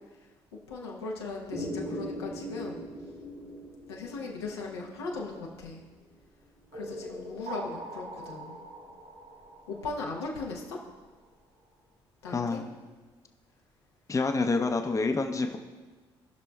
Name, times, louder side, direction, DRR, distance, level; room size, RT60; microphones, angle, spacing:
voice 1, 0.7-2.8 3.9-5.8 6.7-8.6 9.7-10.8 12.2-12.6, left 3 dB, 85° left, -2 dB, 1.1 m, -38 dB
sound 1, 1.5-5.8 6.7-10.5, equal, 60° right, 2.6 m, -41 dB
voice 2, 12.3-12.7 14.1-15.6, left 3 dB, 25° left, 5 dB, 0.7 m, -27 dB
17.0 x 6.0 x 2.3 m, 1.3 s
hypercardioid pair, 45°, 13 cm